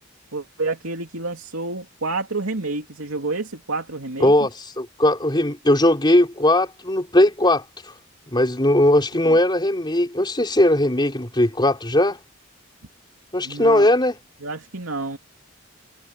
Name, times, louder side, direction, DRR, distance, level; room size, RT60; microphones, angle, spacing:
voice 1, 0.3-4.3 9.2-9.4 13.4-13.9 14.4-15.2, right 3 dB, 75° right, 2.8 m, -29 dB
voice 2, 4.8-7.6 8.3-12.2 13.3-14.1, left 1 dB, 20° left, 4.0 m, -18 dB
head